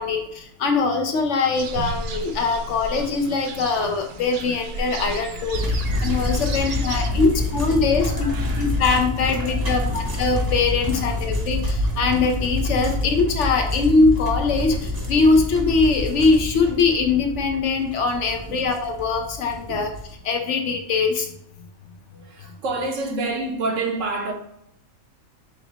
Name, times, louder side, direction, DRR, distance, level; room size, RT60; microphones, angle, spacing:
voice 1, 0.0-8.3 8.6-19.9 20.2-21.3, left 4 dB, 65° left, 0.8 m, -22 dB
sound 1, 1.5-7.1, right 2 dB, 90° right, 0.4 m, -33 dB
sound 2, 5.5-20.1, left 2 dB, 20° right, 0.7 m, -27 dB
voice 2, 6.4-7.5 7.9-8.8 9.2-10.2 10.9-11.2 12.8-13.1 14.6-15.2 18.5-18.6 19.7-19.9 22.1-24.3, right 3 dB, 70° right, 1.0 m, -31 dB
5.8 x 2.0 x 3.9 m
omnidirectional pair, 1.4 m